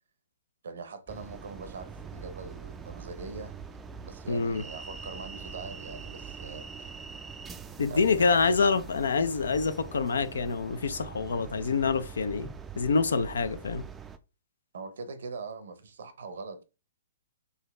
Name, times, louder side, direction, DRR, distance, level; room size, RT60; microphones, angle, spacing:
voice 1, 0.6-3.6 4.0-6.9 7.9-8.7 14.7-16.6, right 4 dB, 65° right, 0.7 m, -42 dB
sound 1, 1.1-14.2, right 6 dB, 15° right, 0.4 m, -43 dB
voice 2, 4.3-4.6 7.8-12.5 12.8-13.9, left 4 dB, 70° left, 0.4 m, -26 dB
3.9 x 2.8 x 3.2 m
figure-of-eight pair, 120°, 0 cm